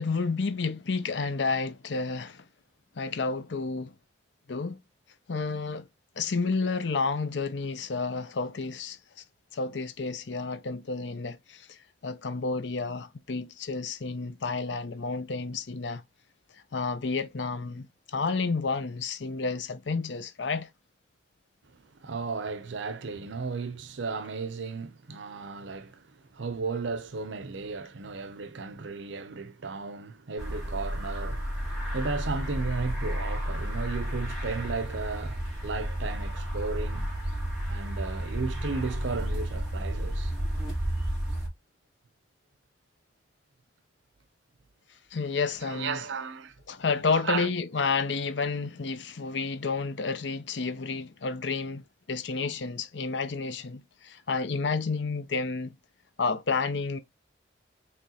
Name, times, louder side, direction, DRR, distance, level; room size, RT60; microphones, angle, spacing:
voice 1, 0.0-2.4 3.0-3.9 4.5-4.8 5.3-5.9 6.2-9.2 9.5-16.0 16.7-20.7 45.1-46.0 46.7-55.8 56.2-57.0, left 4 dB, 80° left, 0.7 m, -30 dB
voice 2, 21.7-37.1 37.7-40.3 45.6-46.6 47.1-47.5, right 4 dB, 90° right, 0.6 m, -35 dB
sound 1, 30.4-41.5, equal, 5° right, 2.7 m, -32 dB
5.0 x 3.4 x 2.8 m
head